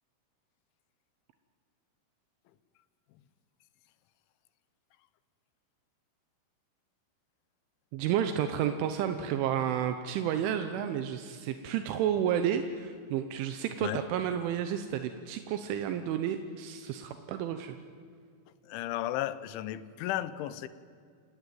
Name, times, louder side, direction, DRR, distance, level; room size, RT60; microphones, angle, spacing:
voice 1, 7.9-17.8, right 9 dB, 85° right, 8 dB, 3.4 m, -31 dB
voice 2, 18.6-20.7, left 13 dB, 85° left, 15 dB, 3.2 m, -34 dB
29.5 x 17.5 x 9.2 m, 2.2 s
omnidirectional pair, 5.5 m